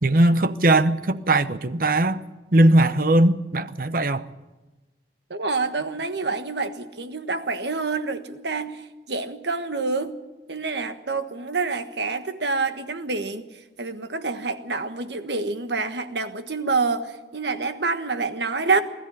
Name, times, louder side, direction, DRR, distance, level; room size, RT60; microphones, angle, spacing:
voice 1, 0.0-2.2 2.5-4.3, right 1 dB, 50° right, 0.9 m, -19 dB
voice 2, 5.3-8.8 9.1-10.1 10.5-13.4 13.8-18.8, right 4 dB, 75° right, 1.5 m, -27 dB
20.5 x 13.5 x 9.9 m
head